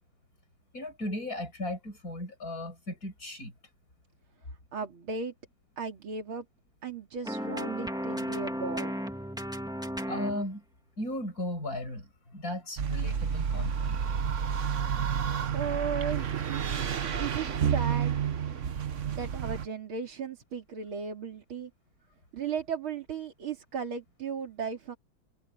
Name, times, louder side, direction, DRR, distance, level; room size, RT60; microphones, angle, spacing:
voice 1, 0.7-3.5 10.1-10.6 11.0-14.0, left 1 dB, 45° left, 6.9 m, -36 dB
voice 2, 4.7-5.3 5.8-6.5 6.8-8.9 15.5-16.7 17.2-18.2 19.0-21.7 22.3-25.0, right 6 dB, 85° right, 3.4 m, -36 dB
sound 1, 7.2-10.5, equal, ahead, 2.1 m, -34 dB
sound 2, 12.8-19.7, right 7 dB, 45° right, 1.1 m, -30 dB
omnidirectional pair, 2.2 m